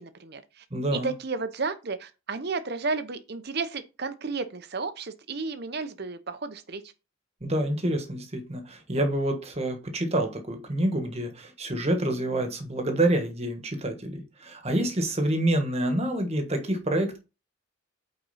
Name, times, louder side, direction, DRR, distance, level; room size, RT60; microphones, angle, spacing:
voice 1, 0.0-0.6 0.9-6.8, right 4 dB, 50° right, 0.8 m, -33 dB
voice 2, 0.7-1.1 7.4-17.2, right 1 dB, 30° right, 1.4 m, -27 dB
8.7 x 4.3 x 4.1 m
head